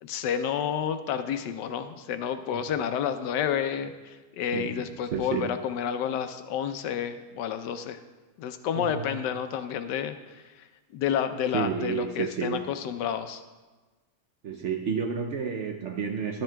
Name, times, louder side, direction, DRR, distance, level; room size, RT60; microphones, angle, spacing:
voice 1, 0.0-8.0 8.4-10.7 10.9-13.4, left 8 dB, 85° left, 9 dB, 1.2 m, -30 dB
voice 2, 4.5-4.9 5.1-5.5 8.8-9.1 11.5-12.7 14.4-16.4, right 6 dB, 75° right, 4 dB, 0.6 m, -30 dB
11.5 x 10.5 x 2.2 m, 1.3 s
omnidirectional pair, 1.8 m